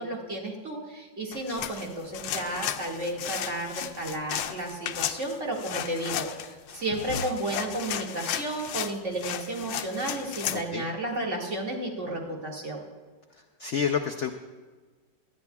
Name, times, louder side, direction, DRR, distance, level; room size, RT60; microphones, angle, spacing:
voice 1, 0.0-12.8, right 1 dB, 40° right, -1 dB, 2.2 m, -33 dB
sound 1, 1.3-10.6, left 10 dB, 85° left, 1.3 m, -34 dB
voice 2, 10.5-10.8 13.6-14.3, left 7 dB, 70° left, 6 dB, 0.6 m, -28 dB
19.0 x 12.0 x 2.3 m, 1.4 s
omnidirectional pair, 2.0 m